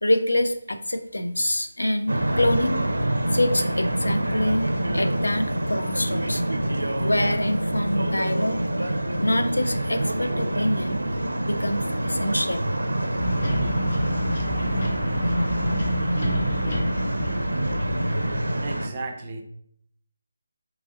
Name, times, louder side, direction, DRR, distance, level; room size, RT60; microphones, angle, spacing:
voice 1, 0.0-2.8 3.3-4.7 4.9-6.4 7.0-8.9 9.2-11.0 11.4-12.6 14.3-14.7, left 1 dB, 90° left, 9 dB, 0.3 m, -26 dB
sound 1, 2.1-18.9, right 1 dB, 90° right, 0.4 m, -26 dB
sound 2, 13.2-18.5, equal, 60° left, 0.8 m, -27 dB
voice 2, 18.6-19.4, right 3 dB, 30° right, 3 dB, 0.5 m, -35 dB
2.9 x 2.5 x 3.7 m, 0.69 s
figure-of-eight pair, 160°, 0 cm